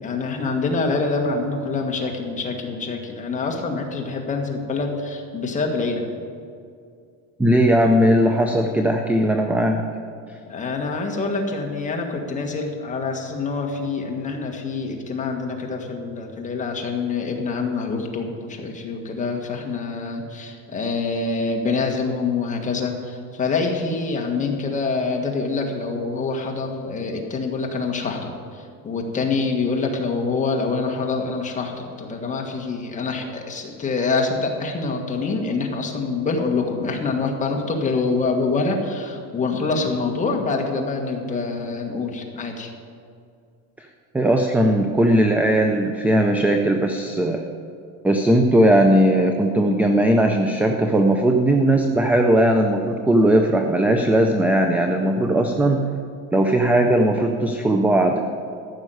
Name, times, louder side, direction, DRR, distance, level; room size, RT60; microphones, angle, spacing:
voice 1, 0.0-6.0 10.5-28.3 28.8-42.7, left 4 dB, 20° left, 1 dB, 1.6 m, -25 dB
voice 2, 7.4-9.8 43.8-43.9 44.1-47.4 48.0-55.8 56.3-58.2, right 1 dB, 5° right, 4 dB, 0.3 m, -18 dB
14.5 x 6.3 x 9.2 m, 2.3 s
cardioid pair, 150°, 41 cm